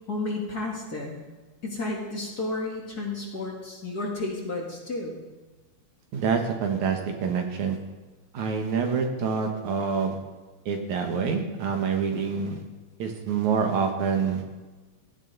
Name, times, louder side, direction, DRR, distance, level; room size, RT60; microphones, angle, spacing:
voice 1, 0.1-1.2 1.6-5.2, left 2 dB, 35° left, -2 dB, 2.3 m, -32 dB
voice 2, 6.1-7.8 8.3-10.2 10.7-12.6 13.0-14.4, right 6 dB, 75° right, 4 dB, 2.8 m, -26 dB
16.0 x 14.5 x 4.0 m, 1.3 s
omnidirectional pair, 3.4 m